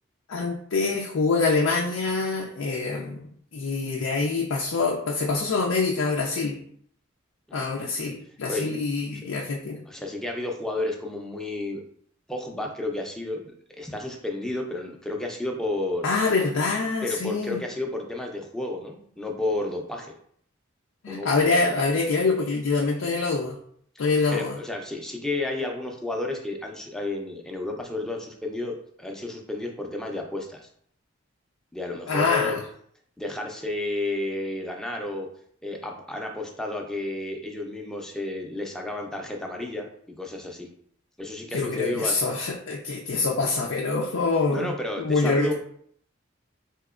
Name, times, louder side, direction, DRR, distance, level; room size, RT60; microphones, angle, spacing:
voice 1, 0.3-6.6 7.5-9.8 16.0-17.6 21.0-23.6 24.0-24.6 32.1-32.6 41.5-45.5, left 3 dB, 90° left, -1 dB, 0.5 m, -25 dB
voice 2, 9.9-11.8 12.3-16.1 17.0-20.1 21.1-21.3 24.3-30.7 31.7-32.5 33.2-35.3 35.6-39.9 40.2-40.7 41.2-42.1 44.5-45.5, left 2 dB, 5° left, 1 dB, 0.5 m, -31 dB
4.1 x 2.8 x 2.4 m, 0.64 s
head